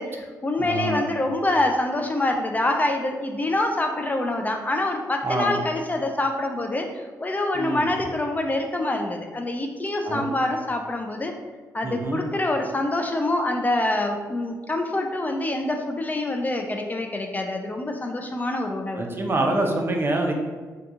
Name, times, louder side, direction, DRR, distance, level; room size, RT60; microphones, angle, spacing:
voice 1, 0.0-11.3 11.7-19.0, left 2 dB, 25° left, 3 dB, 0.3 m, -26 dB
voice 2, 0.6-1.1 5.2-5.6 7.5-7.8 10.1-10.3 11.8-12.2 19.0-20.3, right 2 dB, 35° right, 2 dB, 0.6 m, -25 dB
2.7 x 2.3 x 3.7 m, 1.4 s
cardioid pair, 65°, 7 cm